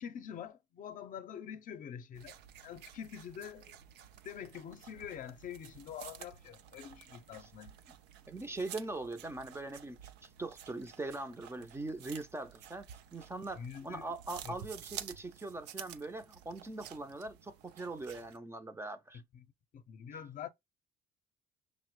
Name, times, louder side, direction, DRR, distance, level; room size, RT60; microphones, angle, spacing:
voice 1, 0.0-2.4 2.6-3.8 4.2-7.8 13.6-14.1 14.5-14.6 19.1-19.5 19.7-20.5, left 8 dB, 50° left, 0.5 m, -45 dB
sound 1, 2.1-18.4, right 10 dB, 90° right, 0.5 m, -51 dB
voice 2, 8.3-19.2, right 2 dB, 15° right, 0.4 m, -42 dB
5.7 x 2.1 x 3.0 m
cardioid pair, 110°, 17 cm